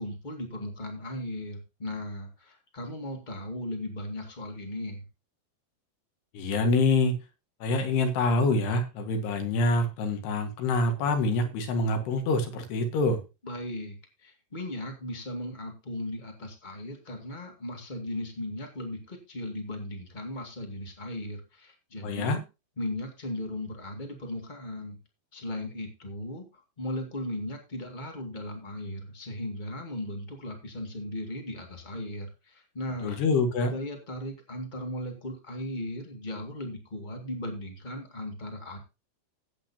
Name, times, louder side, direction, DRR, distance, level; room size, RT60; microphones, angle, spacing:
voice 1, 0.0-5.0 13.4-22.4 22.8-25.0 25.3-33.2 33.6-38.8, left 1 dB, 55° left, 3 dB, 0.5 m, -37 dB
voice 2, 6.3-7.2 7.6-13.2 22.0-22.4 33.0-33.7, left 2 dB, 70° left, 7 dB, 3.7 m, -26 dB
17.0 x 8.5 x 2.8 m, 0.28 s
omnidirectional pair, 5.0 m